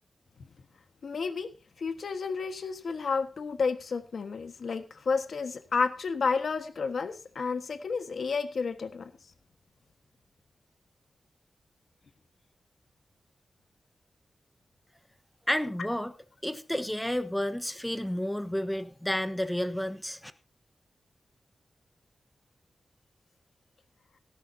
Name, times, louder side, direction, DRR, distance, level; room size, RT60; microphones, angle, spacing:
voice 1, 1.0-1.5 1.8-9.1, left 5 dB, 70° left, 9 dB, 1.4 m, -31 dB
voice 2, 15.5-16.1 16.4-20.3, left 1 dB, 5° left, 11 dB, 1.1 m, -31 dB
18.0 x 11.0 x 2.8 m, 0.33 s
wide cardioid pair, 150°, 0 cm